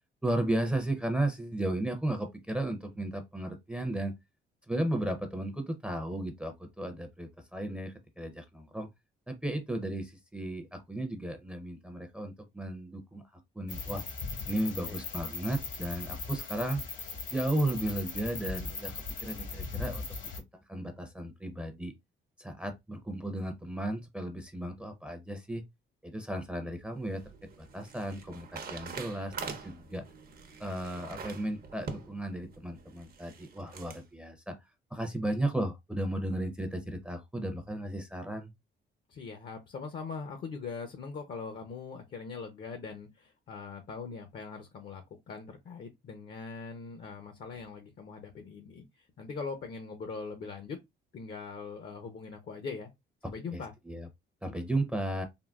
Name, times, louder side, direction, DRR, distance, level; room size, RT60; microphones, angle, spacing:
voice 1, 0.2-4.2 4.7-8.9 9.3-14.0 14.5-16.8 17.3-20.0 20.7-21.9 22.4-25.6 26.0-30.0 30.6-34.6 34.9-38.5 53.5-54.1 54.4-55.2, right 1 dB, 5° right, 0.5 m, -34 dB
sound 1, 13.7-20.4, left 4 dB, 70° left, 1.1 m, -39 dB
voice 2, 14.6-15.0 39.1-50.8 51.1-52.9 53.2-53.7, left 5 dB, 50° left, 0.6 m, -41 dB
sound 2, 26.7-34.0, right 5 dB, 50° right, 0.7 m, -45 dB
3.6 x 2.0 x 2.3 m
cardioid pair, 90°, 20 cm